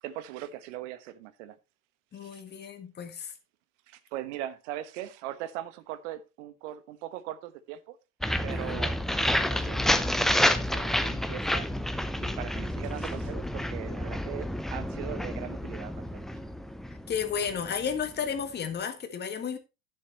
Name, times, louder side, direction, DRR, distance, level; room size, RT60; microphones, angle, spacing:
voice 1, 0.0-1.6 2.2-2.4 3.9-8.0 8.4-11.7 12.2-16.2, right 12 dB, 50° right, 1.3 m, -40 dB
voice 2, 2.1-3.3 8.5-8.8 16.9-19.6, left 7 dB, 20° left, 1.8 m, -33 dB
sound 1, 8.2-18.0, left 1 dB, ahead, 0.7 m, -29 dB
11.0 x 9.3 x 3.0 m
figure-of-eight pair, 80°, 45 cm